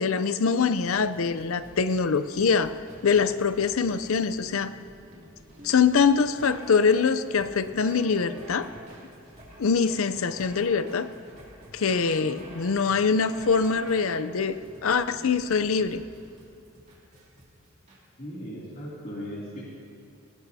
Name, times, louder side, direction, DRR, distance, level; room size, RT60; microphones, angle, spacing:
voice 1, 0.0-2.8 3.0-4.7 5.6-8.7 9.6-11.1 11.7-14.6 14.8-16.0, left 5 dB, 80° left, 13 dB, 0.6 m, -24 dB
sound 1, 0.7-18.0, right 1 dB, 35° right, 3.0 m, -48 dB
voice 2, 18.2-19.6, equal, 40° left, -7 dB, 2.9 m, -37 dB
19.0 x 18.5 x 2.8 m, 2.8 s
head